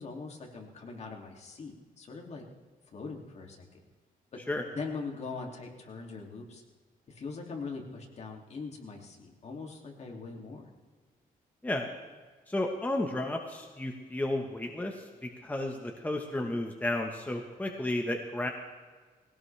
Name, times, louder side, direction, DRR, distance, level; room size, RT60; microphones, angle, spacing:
voice 1, 0.0-2.4 2.9-3.8 4.3-4.4 4.7-6.6 7.1-10.7, left 4 dB, 45° left, 0 dB, 2.7 m, -41 dB
voice 2, 12.5-18.5, left 1 dB, 10° left, 2 dB, 1.3 m, -33 dB
20.5 x 17.5 x 3.4 m, 1.5 s
cardioid pair, 125°, 15 cm